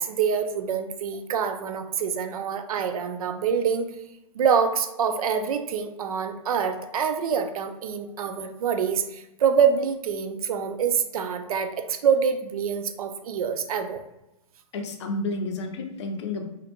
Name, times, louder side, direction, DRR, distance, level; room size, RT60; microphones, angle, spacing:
voice 1, 0.0-3.9 4.3-14.0, right 7 dB, 75° right, 7 dB, 0.4 m, -25 dB
voice 2, 14.7-16.4, left 2 dB, 50° left, 4 dB, 0.5 m, -30 dB
2.5 x 2.1 x 2.8 m, 0.92 s
hypercardioid pair, 160°, 19 cm